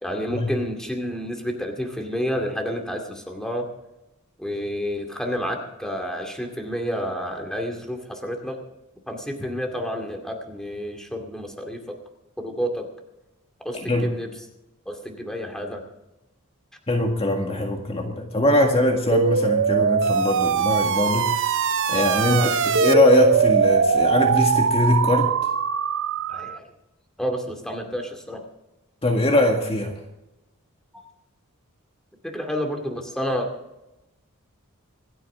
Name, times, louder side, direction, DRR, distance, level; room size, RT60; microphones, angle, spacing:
voice 1, 0.0-3.7 4.4-8.6 9.1-11.8 12.4-12.9 13.6-14.3 14.9-15.8 22.3-22.5 26.3-26.7 27.2-28.4 30.9-31.0 32.2-33.5, equal, 5° left, 3 dB, 2.2 m, -29 dB
voice 2, 16.9-21.6 21.9-25.3 29.0-29.9, left 1 dB, 25° left, 2 dB, 1.9 m, -22 dB
sound 1, 19.1-26.6, right 6 dB, 60° right, 0.6 m, -21 dB
27.0 x 9.2 x 3.7 m, 0.94 s
head